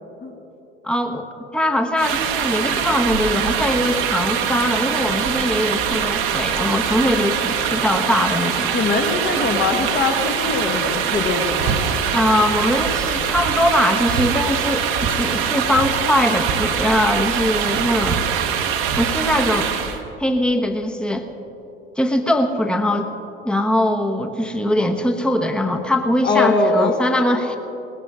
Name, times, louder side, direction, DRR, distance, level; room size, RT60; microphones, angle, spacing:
voice 1, 0.8-8.8 12.1-18.2 19.0-19.7 20.2-21.3 22.0-23.1 23.4-27.6, left 1 dB, 5° left, 5 dB, 1.2 m, -21 dB
sound 1, 2.0-20.0, right 8 dB, 65° right, 1.3 m, -23 dB
voice 2, 8.7-11.8 26.2-27.0, left 3 dB, 35° left, 3 dB, 1.6 m, -21 dB
sound 2, 11.6-11.8 12.1-12.6 13.0-13.1 13.4-14.3 14.9-15.2 15.4-15.5 15.7-17.4 17.7-19.1, right 6 dB, 45° right, 1.0 m, -28 dB
19.5 x 15.5 x 3.7 m, 2.9 s
figure-of-eight pair, 65°, 30 cm